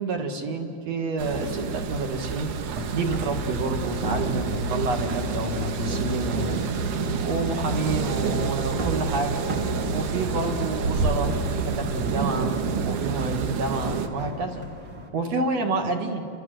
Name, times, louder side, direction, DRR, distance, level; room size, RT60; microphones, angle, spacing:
voice 1, 0.0-2.5 2.9-6.6 7.2-9.4 9.9-12.5 12.9-14.7 15.1-16.3, right 3 dB, 55° right, 3 dB, 2.7 m, -29 dB
sound 1, 1.2-14.1, right 5 dB, 90° right, 2.9 m, -28 dB
sound 2, 2.6-15.1, right 1 dB, 40° right, 2.1 m, -41 dB
sound 3, 2.9-12.9, left 7 dB, 70° left, 1.6 m, -37 dB
30.0 x 23.0 x 7.8 m, 2.6 s
omnidirectional pair, 3.7 m